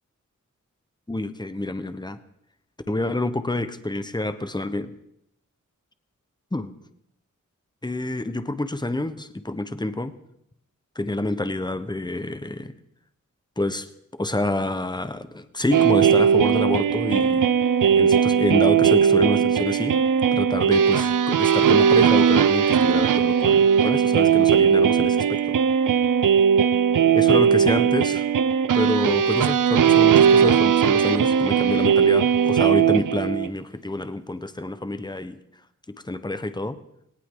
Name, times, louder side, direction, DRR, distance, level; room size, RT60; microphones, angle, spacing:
voice 1, 1.1-2.2 2.9-4.9 6.5-6.7 7.8-10.1 10.9-12.8 13.6-17.5 18.0-20.0 20.3-25.6 27.1-28.3 28.7-35.4 35.9-36.8, left 2 dB, 15° left, 11 dB, 1.1 m, -28 dB
sound 1, 15.7-33.5, right 7 dB, 80° right, 0.6 m, -18 dB
19.0 x 18.5 x 3.9 m, 0.78 s
wide cardioid pair, 65°, 32 cm